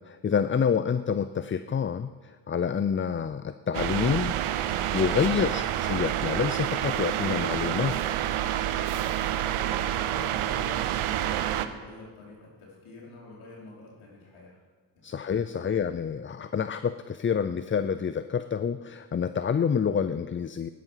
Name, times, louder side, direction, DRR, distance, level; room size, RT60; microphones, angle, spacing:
voice 1, 0.1-4.3 4.7-8.2 10.2-10.3 15.0-20.7, left 7 dB, 25° left, 12 dB, 0.5 m, -28 dB
sound 1, 3.7-11.7, right 11 dB, 80° right, 0.9 m, -28 dB
voice 2, 5.2-5.6 9.2-14.6 14.9-15.2 15.5-15.8, left 2 dB, 75° left, -3 dB, 4.8 m, -48 dB
14.5 x 11.0 x 5.8 m, 1.5 s
supercardioid pair, 65°, 50 cm